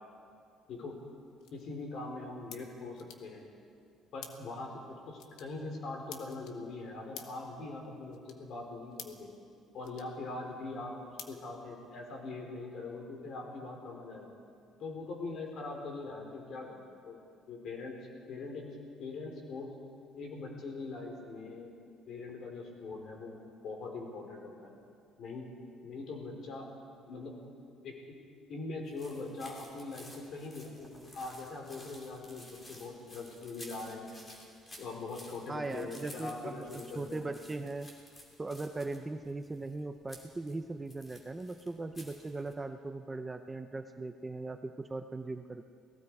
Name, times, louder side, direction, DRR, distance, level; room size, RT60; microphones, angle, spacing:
sound 1, 0.7-12.2, left 8 dB, 65° left, 1.6 m, -55 dB
voice 1, 1.5-3.4 4.1-4.7 5.0-9.3 9.7-11.0 11.3-14.3 14.8-17.2 17.5-17.9 18.3-18.7 19.0-19.7 20.2-21.7 22.1-23.4 23.6-24.7 25.2-25.5 25.8-26.7 27.1-27.4 27.8-28.2 28.5-34.3 34.8-37.2, left 3 dB, 45° left, 1 dB, 4.2 m, -42 dB
sound 2, 28.9-42.5, left 1 dB, 15° left, 2.8 m, -54 dB
voice 2, 35.5-37.9 38.4-45.7, right 2 dB, 10° right, 7 dB, 0.6 m, -39 dB
29.0 x 18.5 x 4.8 m, 2.3 s
cardioid pair, 170°, 0 cm